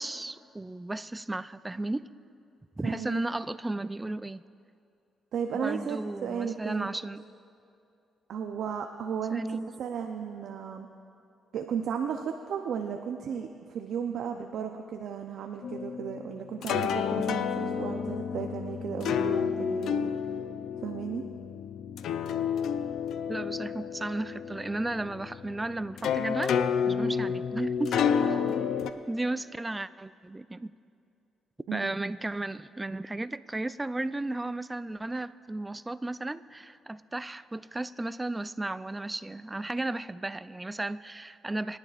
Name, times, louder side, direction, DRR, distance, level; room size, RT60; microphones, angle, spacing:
voice 1, 0.0-2.1 2.8-4.4 5.6-7.2 9.3-9.7 23.3-28.2 29.1-30.7 31.7-41.8, right 2 dB, 15° right, 15 dB, 0.4 m, -34 dB
voice 2, 2.8-3.2 5.3-6.9 8.3-10.9 11.5-20.1 20.8-21.2 28.2-28.5 28.8-28.9 31.7-32.0, right 7 dB, 75° right, 3 dB, 0.6 m, -35 dB
sound 1, 15.6-28.9, left 7 dB, 80° left, 0.4 m, -30 dB
24.0 x 10.5 x 2.5 m, 2.6 s
cardioid pair, 75°, 0 cm